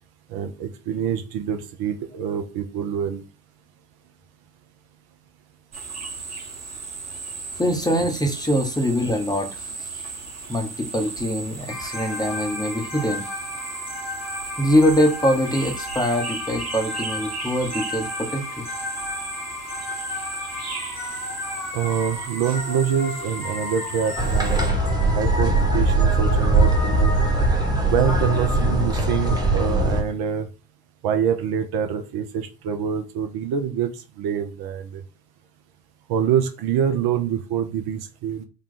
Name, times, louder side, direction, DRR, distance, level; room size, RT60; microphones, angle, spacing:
voice 1, 0.3-3.2 21.7-24.7 25.1-27.1 27.9-30.5 31.0-33.9 34.2-35.0 36.1-38.5, right 8 dB, 50° right, 7 dB, 0.8 m, -25 dB
sound 1, 5.7-24.7, right 4 dB, 30° right, 1.4 m, -36 dB
voice 2, 7.6-9.9 10.5-13.2 14.6-18.7, equal, 10° left, 4 dB, 0.8 m, -23 dB
sound 2, 11.7-30.0, left 2 dB, 85° left, 1.5 m, -34 dB
sound 3, 24.2-30.0, right 2 dB, 10° right, 1.1 m, -20 dB
3.7 x 2.3 x 3.8 m, 0.32 s
hypercardioid pair, 65°, 49 cm